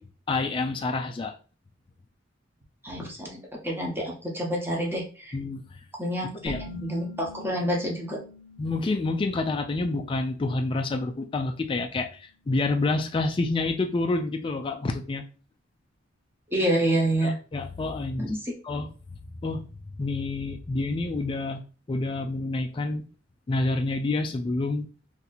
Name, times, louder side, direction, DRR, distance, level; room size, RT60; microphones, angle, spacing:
voice 1, 0.3-1.3 5.3-5.8 6.4-6.6 8.6-15.2 17.2-18.3 18.6-18.9 19.4-21.6 21.9-23.0 23.5-24.9, left 2 dB, 25° left, 5 dB, 0.3 m, -28 dB
voice 2, 2.8-5.4 6.0-8.2 16.5-17.3 18.2-18.5, right 1 dB, 10° right, -2 dB, 0.9 m, -28 dB
sound 1, 6.4-11.8, left 2 dB, 60° left, 0.7 m, -46 dB
2.8 x 2.6 x 3.9 m, 0.37 s
head